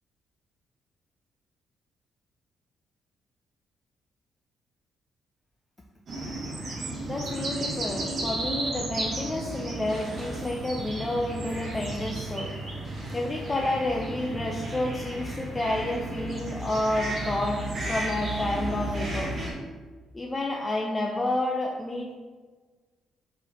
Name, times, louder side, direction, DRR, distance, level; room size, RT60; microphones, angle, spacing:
sound 1, 6.1-19.5, right 1 dB, 55° right, 1.0 m, -33 dB
voice 1, 7.1-12.5 13.1-19.3 20.1-22.1, left 1 dB, 20° left, 0 dB, 0.4 m, -30 dB
4.6 x 3.0 x 2.8 m, 1.4 s
cardioid pair, 90°, 0 cm